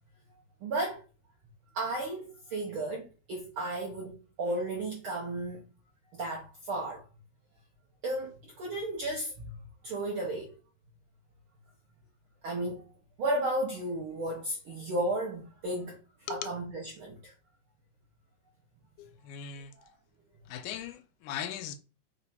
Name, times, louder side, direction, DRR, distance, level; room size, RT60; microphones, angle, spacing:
voice 1, 0.6-1.0 1.7-4.1 4.4-5.6 6.1-7.0 8.0-9.5 9.8-10.5 12.4-12.8 13.2-16.0 16.3-17.3 19.8-19.9, right 1 dB, 75° right, 1.2 m, -33 dB
voice 2, 19.0-19.7 20.5-21.8, left 9 dB, 85° left, 2.0 m, -39 dB
5.0 x 2.2 x 4.1 m
omnidirectional pair, 3.5 m